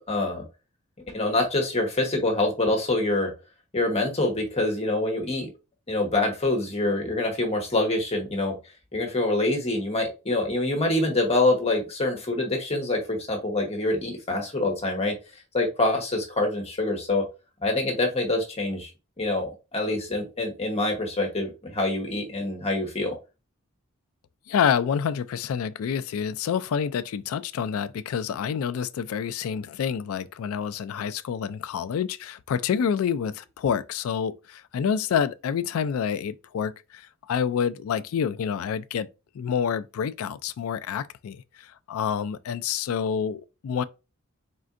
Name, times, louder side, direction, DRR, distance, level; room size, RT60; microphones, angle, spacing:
voice 1, 0.1-0.4 1.1-3.3 3.7-5.5 5.9-8.5 8.9-15.1 15.5-17.2 17.6-18.9 19.2-23.1, left 2 dB, 30° left, 1.1 m, -25 dB
voice 2, 24.5-39.1 39.3-43.8, left 7 dB, 80° left, 0.3 m, -28 dB
4.2 x 3.7 x 2.5 m
head